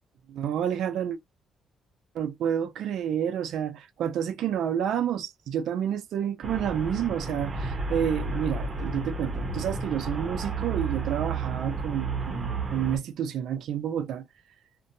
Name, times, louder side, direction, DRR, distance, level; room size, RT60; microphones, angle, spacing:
voice 1, 0.3-1.2 2.1-14.3, right 9 dB, 75° right, 0.5 m, -29 dB
Traffic noise roadway noise, 6.4-13.0, right 3 dB, 35° right, 0.9 m, -32 dB
2.6 x 2.2 x 2.6 m
cardioid pair, 90°, 0 cm